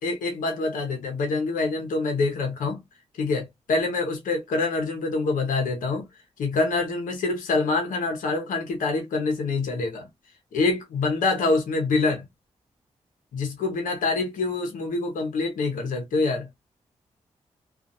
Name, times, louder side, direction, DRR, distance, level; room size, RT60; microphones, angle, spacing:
voice 1, 0.0-2.8 3.2-6.1 6.4-10.1 10.5-12.3 13.3-16.5, left 3 dB, 90° left, 0.9 m, -26 dB
2.4 x 2.4 x 2.6 m
supercardioid pair, 45°, 13 cm